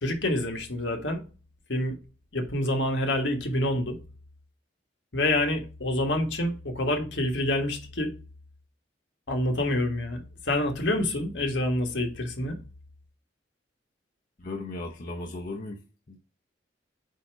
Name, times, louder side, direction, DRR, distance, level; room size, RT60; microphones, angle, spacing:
voice 1, 0.0-1.2 1.7-2.0 2.3-4.0 5.1-8.1 9.3-12.6, left 1 dB, 70° left, 1.5 m, -27 dB
voice 2, 14.4-15.8 16.1-16.2, left 2 dB, 45° left, 0.7 m, -36 dB
8.2 x 2.9 x 4.4 m
head